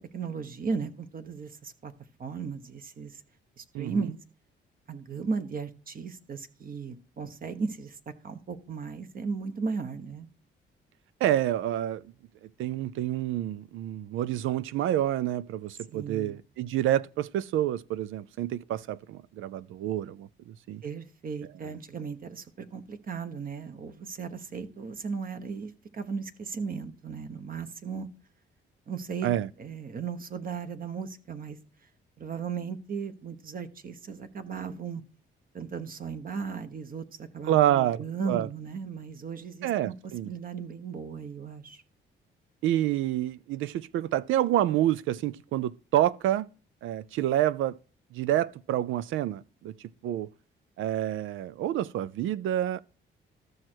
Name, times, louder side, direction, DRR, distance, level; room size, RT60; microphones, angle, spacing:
voice 1, 0.1-1.9 2.2-3.1 3.6-4.2 4.9-7.9 8.2-10.3 15.9-16.4 20.8-28.1 28.9-31.6 32.2-35.0 35.5-39.9 40.2-41.8, right 5 dB, 45° right, 1.2 m, -36 dB
voice 2, 3.7-4.1 11.2-12.0 12.4-20.8 29.2-29.5 37.5-38.5 39.6-40.3 42.6-46.5 46.8-47.8 48.1-49.7 50.0-50.3 50.8-52.8, right 12 dB, 85° right, 0.5 m, -28 dB
13.5 x 6.4 x 4.5 m
cardioid pair, 90°, 20 cm